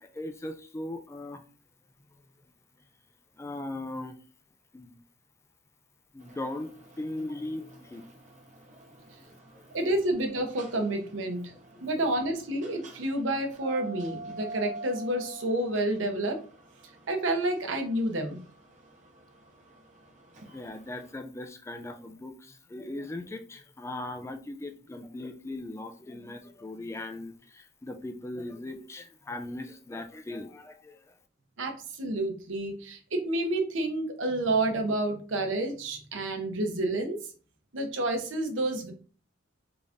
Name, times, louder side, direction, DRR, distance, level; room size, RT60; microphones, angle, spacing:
voice 1, 0.0-1.4 3.4-4.2 4.7-5.0 6.1-8.0 9.5-9.6 11.7-11.8 20.5-31.0, left 2 dB, 15° left, 0.3 m, -39 dB
sound 1, 6.2-21.1, right 2 dB, 40° right, 0.8 m, -48 dB
voice 2, 9.7-11.5 11.8-16.4 17.1-18.4 31.6-31.7 32.0-37.2 37.7-38.9, right 1 dB, 85° right, 0.8 m, -29 dB
3.8 x 2.5 x 3.5 m
head